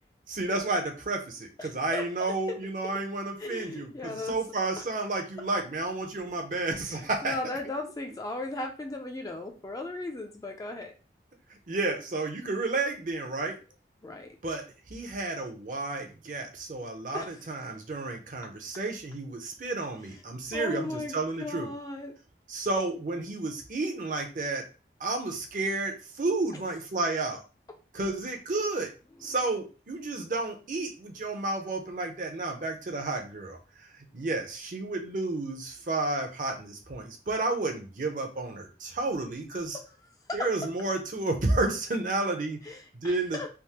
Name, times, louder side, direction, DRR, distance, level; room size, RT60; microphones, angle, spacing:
voice 1, 0.3-7.3 11.7-13.5 14.4-14.6 14.9-21.7 22.5-24.6 25.0-27.4 27.9-28.9 29.2-33.6 34.1-39.8 40.3-42.6 43.0-43.4, right 2 dB, 45° right, 3 dB, 0.5 m, -31 dB
voice 2, 1.6-2.0 2.5-2.6 3.4-4.4 4.8-4.9 6.7-10.9 14.0-14.4 17.1-17.5 20.5-22.1 26.5-26.6 40.3-40.5 42.6-43.5, left 2 dB, 20° left, 4 dB, 0.3 m, -37 dB
3.4 x 2.0 x 2.8 m, 0.34 s
head